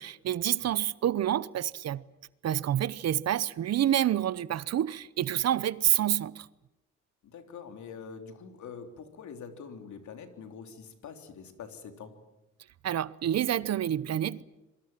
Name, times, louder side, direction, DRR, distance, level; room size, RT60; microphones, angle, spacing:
voice 1, 0.0-2.0 2.4-6.5 12.8-14.4, right 11 dB, 55° right, 0.8 m, -28 dB
voice 2, 7.2-12.1, left 6 dB, 70° left, 3.5 m, -45 dB
26.5 x 24.0 x 7.5 m
cardioid pair, 90°, 30 cm